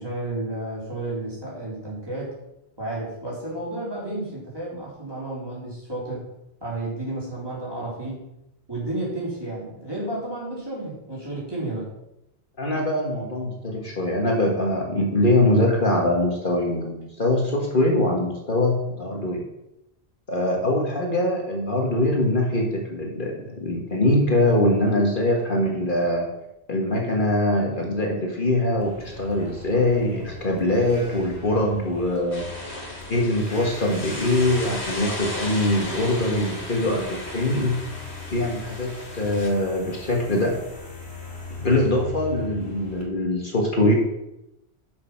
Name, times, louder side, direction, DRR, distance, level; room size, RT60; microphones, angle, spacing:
voice 1, 0.0-2.3 2.8-6.3 6.6-8.3 8.7-11.9, right 2 dB, 20° right, -6 dB, 3.8 m, -32 dB
voice 2, 12.6-19.4 20.3-26.3 26.7-32.5 33.1-37.7 38.3-40.6 41.6-43.9, left 1 dB, 50° left, 0 dB, 1.7 m, -23 dB
sound 1, 28.8-43.0, left 3 dB, 70° left, 2.9 m, -40 dB
sound 2, 32.3-39.5, left 1 dB, 85° left, 2.7 m, -35 dB
9.6 x 6.5 x 5.9 m, 0.87 s
omnidirectional pair, 1.1 m